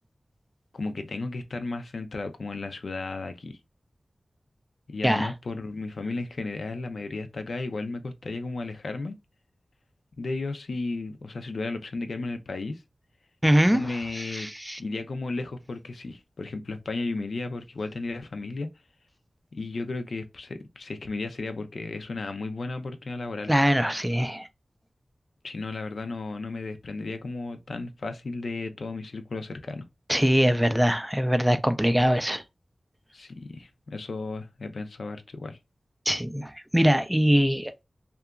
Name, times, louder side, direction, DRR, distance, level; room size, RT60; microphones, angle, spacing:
voice 1, 0.7-3.6 4.9-9.2 10.2-12.8 13.7-14.5 14.8-18.7 19.5-23.5 25.4-29.9 33.1-35.6, left 3 dB, 80° left, 0.4 m, -34 dB
voice 2, 13.4-13.8 14.1-14.8 23.5-24.5 30.1-32.4 36.1-37.8, equal, 5° right, 0.3 m, -22 dB
2.8 x 2.3 x 2.3 m
wide cardioid pair, 85°, 0 cm